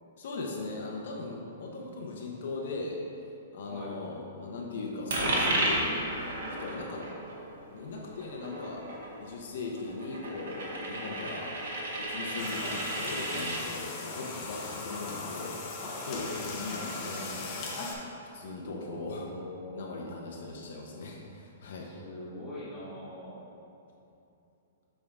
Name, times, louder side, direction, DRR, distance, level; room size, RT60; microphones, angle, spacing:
voice 1, 0.2-3.0 3.5-6.1 6.6-7.0 7.7-8.8 9.2-11.5 12.0-15.5 16.0-17.7 18.3-19.3 19.7-21.9, left 3 dB, 55° left, -1 dB, 0.8 m, -39 dB
voice 2, 3.6-4.0 16.1-16.7 18.7-19.8 21.8-23.5, left 1 dB, 5° left, -10 dB, 1.4 m, -43 dB
Coin (dropping), 5.1-13.6, right 1 dB, 70° right, 1.5 m, -33 dB
sound 1, 12.4-17.9, left 3 dB, 25° left, 0.8 m, -38 dB
7.3 x 3.7 x 4.9 m, 2.8 s
hypercardioid pair, 175°, 0 cm